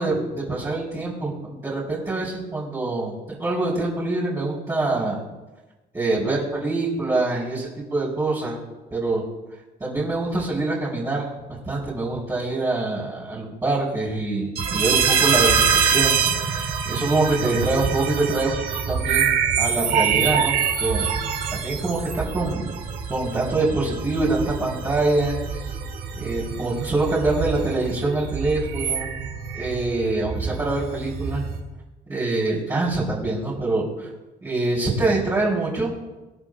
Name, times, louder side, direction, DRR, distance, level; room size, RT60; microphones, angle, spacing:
voice 1, 0.0-5.2 5.9-8.6 8.9-9.2 9.8-18.6 18.9-20.5 20.8-21.1 21.5-22.7 23.1-25.7 26.2-29.1 29.5-31.4 32.1-34.1 34.4-36.0, right 2 dB, 20° right, -9 dB, 4.4 m, -25 dB
sound 1, 14.6-31.6, right 7 dB, 70° right, 3.9 m, -25 dB
25.5 x 10.5 x 2.6 m, 1.1 s
cardioid pair, 110°, 17 cm